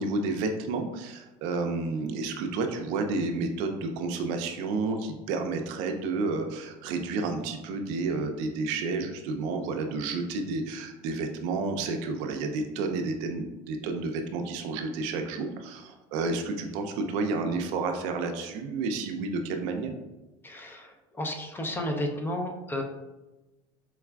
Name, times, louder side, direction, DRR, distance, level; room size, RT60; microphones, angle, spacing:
voice 1, 0.0-19.9, right 3 dB, 70° right, 5 dB, 0.4 m, -31 dB
voice 2, 20.4-22.8, left 1 dB, 15° left, 3 dB, 0.5 m, -32 dB
4.5 x 2.3 x 2.2 m, 1.1 s
supercardioid pair, 105°, 13 cm